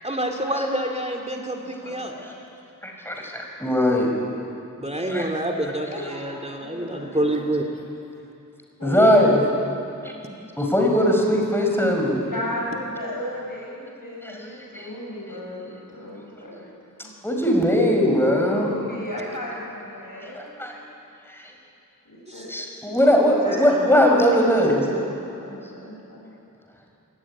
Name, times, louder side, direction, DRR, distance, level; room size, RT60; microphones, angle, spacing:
voice 1, 0.0-2.1 4.8-7.7 22.3-22.5, right 1 dB, 20° right, 2 dB, 2.5 m, -27 dB
voice 2, 1.6-2.2 5.9-7.5 8.8-9.4 12.2-16.6 17.9-20.8 22.1-22.5 23.3-26.4, left 1 dB, 80° left, -3 dB, 7.4 m, -35 dB
voice 3, 2.8-4.1 5.1-5.2 5.6-5.7 6.0-6.1 8.8-9.5 10.0-10.1 10.6-12.2 14.2-14.9 16.4-16.5 17.2-18.7 19.2-19.3 20.2-20.8 21.2-21.5 22.5-24.9, equal, 5° left, 1 dB, 5.1 m, -20 dB
22.5 x 18.0 x 9.8 m, 2.6 s
wide cardioid pair, 45°, 33 cm